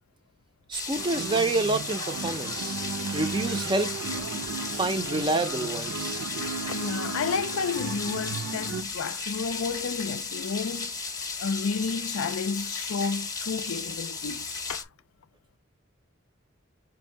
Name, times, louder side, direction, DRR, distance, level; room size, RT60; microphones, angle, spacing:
sound 1, 0.7-14.8, left 4 dB, 15° left, 0.7 m, -35 dB
voice 1, 0.7-2.8 3.1-3.9 4.7-6.2, right 3 dB, 25° right, 0.4 m, -28 dB
sound 2, 1.0-8.8, right 5 dB, 90° right, 0.5 m, -35 dB
voice 2, 6.7-11.1 11.4-14.9, left 5 dB, 90° left, 0.4 m, -31 dB
4.5 x 2.6 x 4.3 m
head